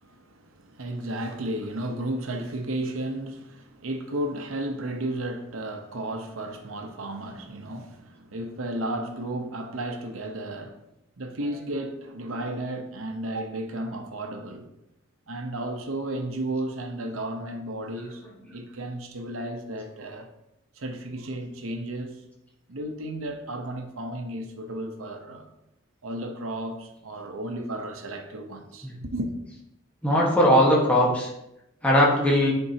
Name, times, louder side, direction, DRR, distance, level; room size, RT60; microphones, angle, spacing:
voice 1, 0.0-10.8 11.2-14.7 15.3-18.2 18.5-20.3 20.7-22.2 22.7-25.5 26.0-29.3, right 1 dB, 85° right, 0.9 m, -33 dB
voice 2, 30.0-31.3 31.8-32.5, equal, 5° left, 1.3 m, -19 dB
9.7 x 4.5 x 2.8 m
head